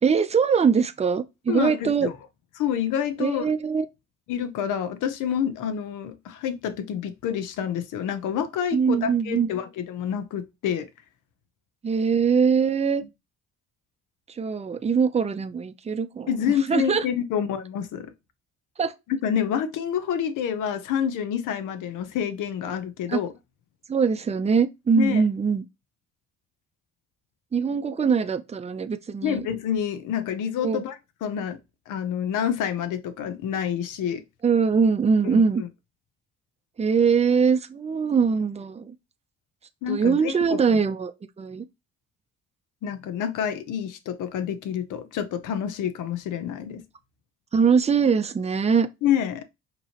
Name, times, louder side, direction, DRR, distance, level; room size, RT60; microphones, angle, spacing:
voice 1, 0.0-2.1 3.2-3.9 8.7-9.5 11.8-13.0 14.3-16.3 16.7-17.0 18.8-18.9 23.1-23.2 23.9-25.6 27.5-29.5 30.6-30.8 34.4-35.6 36.8-38.9 39.9-41.1 41.4-41.6 47.5-48.9, right 6 dB, 20° right, 0.5 m, -22 dB
voice 2, 1.5-2.1 2.6-3.5 4.3-10.9 16.3-18.1 19.1-23.3 24.9-25.2 29.2-31.0 31.2-31.6 31.9-34.2 35.2-35.7 39.8-40.6 42.8-46.8 49.0-49.4, left 9 dB, 85° left, 0.8 m, -28 dB
5.4 x 3.0 x 2.9 m
cardioid pair, 90°, 30 cm